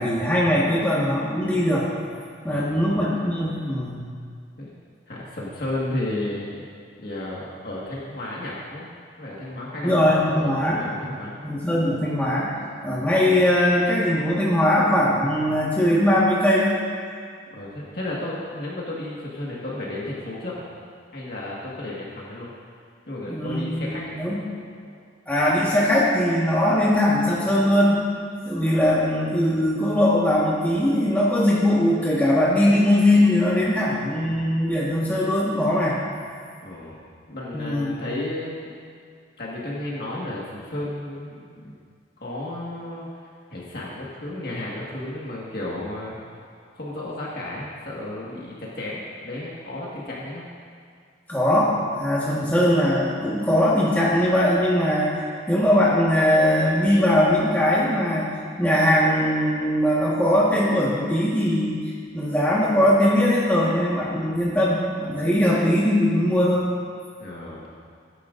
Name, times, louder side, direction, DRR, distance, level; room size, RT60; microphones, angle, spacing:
voice 1, 0.0-1.9 2.4-4.0 9.8-11.1 11.4-16.7 23.3-24.4 25.3-28.0 28.4-36.0 37.5-37.9 51.3-55.1 55.5-58.3 58.6-61.8 62.1-66.7, left 1 dB, 10° left, -7 dB, 1.5 m, -20 dB
voice 2, 2.5-3.0 4.6-4.7 5.1-6.6 7.0-8.9 9.2-11.4 17.5-20.6 21.1-22.5 23.1-24.1 24.8-24.9 36.6-37.0 37.3-38.7 39.4-41.7 42.2-43.1 43.5-46.2 46.7-50.4 67.2-67.7, left 1 dB, 55° left, -6 dB, 1.7 m, -33 dB
20.0 x 10.0 x 2.6 m, 2.1 s
head